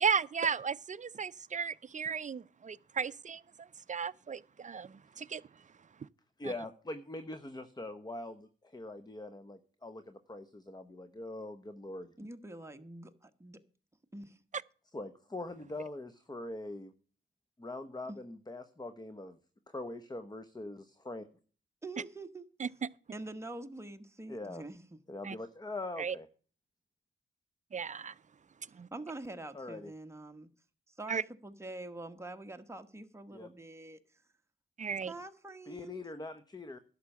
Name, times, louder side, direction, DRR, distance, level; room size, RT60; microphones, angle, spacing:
voice 1, 0.0-5.4 22.6-22.7 25.2-25.4 26.0-26.1 27.7-28.1 28.7-28.9 31.1-31.2 34.8-35.1, right 6 dB, 35° right, 0.5 m, -35 dB
voice 2, 6.4-12.1 14.9-16.9 17.6-19.4 19.7-21.3 24.3-24.6 25.1-26.3 29.5-29.9 33.3-33.5 35.7-36.8, left 2 dB, 20° left, 0.9 m, -43 dB
voice 3, 12.2-13.6 14.1-14.4 18.1-18.2 21.8-22.4 23.1-25.0 28.9-30.5 31.0-34.0 35.1-36.0, right 2 dB, 15° right, 1.2 m, -45 dB
11.0 x 6.6 x 7.1 m
cardioid pair, 65°, 21 cm